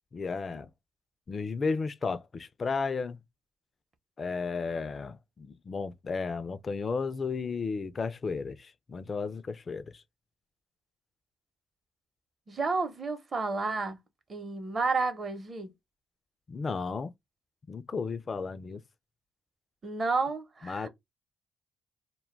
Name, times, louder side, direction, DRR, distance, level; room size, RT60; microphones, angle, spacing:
voice 1, 0.1-0.7 1.3-3.2 4.2-10.0 16.5-17.1 17.7-18.8 20.6-20.9, left 4 dB, 40° left, 0.3 m, -33 dB
voice 2, 12.5-14.0 14.3-15.7 19.8-20.9, right 4 dB, 40° right, 0.8 m, -31 dB
2.2 x 2.1 x 3.1 m
cardioid pair, 90°, 0 cm